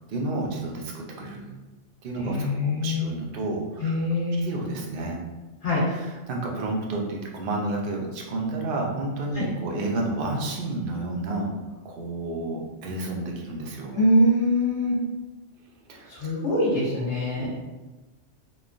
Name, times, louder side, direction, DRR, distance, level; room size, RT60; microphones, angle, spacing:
voice 1, 0.1-1.5 2.0-4.0 4.4-5.2 5.9-11.5 11.8-13.9 15.9-16.3 17.4-17.5, right 2 dB, 60° right, -1 dB, 0.6 m, -30 dB
voice 2, 2.2-3.1 3.8-4.5 5.6-5.8 9.3-9.4 13.9-15.0 16.1-17.5, left 1 dB, 75° left, -9 dB, 1.2 m, -23 dB
3.0 x 2.2 x 2.4 m, 1.2 s
omnidirectional pair, 1.2 m